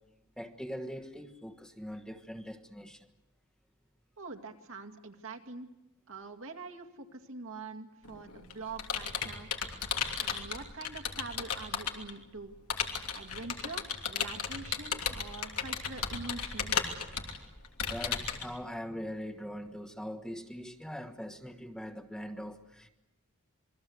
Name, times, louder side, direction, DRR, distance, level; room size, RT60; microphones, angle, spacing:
voice 1, 0.4-3.1 10.0-10.2 17.9-22.9, equal, 5° left, 5 dB, 1.3 m, -42 dB
voice 2, 4.2-5.7 6.1-9.5 10.2-12.5 13.1-16.7, right 3 dB, 65° right, 5 dB, 2.3 m, -44 dB
Computer keyboard, 8.0-12.1 12.7-18.5, left 7 dB, 90° left, 3.0 m, -34 dB
27.5 x 22.0 x 8.0 m, 0.96 s
head